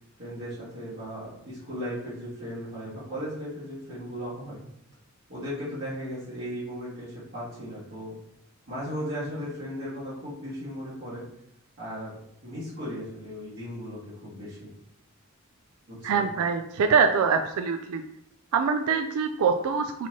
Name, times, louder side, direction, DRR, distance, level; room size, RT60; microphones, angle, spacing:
voice 1, 0.2-4.6 5.3-8.1 8.7-11.2 11.8-14.7 15.9-16.3, equal, 50° right, -12 dB, 1.7 m, -36 dB
voice 2, 16.0-18.0 18.5-20.1, right 5 dB, 85° right, 6 dB, 0.4 m, -24 dB
4.5 x 4.2 x 2.8 m, 0.77 s
head